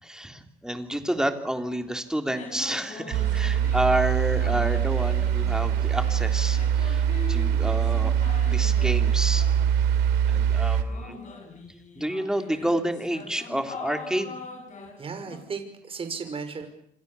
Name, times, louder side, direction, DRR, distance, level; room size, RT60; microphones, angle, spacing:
voice 1, 0.0-8.2 8.4-9.5 10.3-11.2 12.0-14.4, right 1 dB, 5° right, 6 dB, 3.5 m, -29 dB
sound 1, 1.8-1.9 2.2-4.1 4.4-10.3 10.9-15.4, left 4 dB, 45° left, 7.7 m, -43 dB
sound 2, 3.1-10.8, right 9 dB, 85° right, 3.1 m, -23 dB
voice 2, 7.5-7.9 15.0-16.7, right 5 dB, 35° right, 7 dB, 5.7 m, -36 dB
28.5 x 26.0 x 7.1 m, 0.71 s
cardioid pair, 110°, 17 cm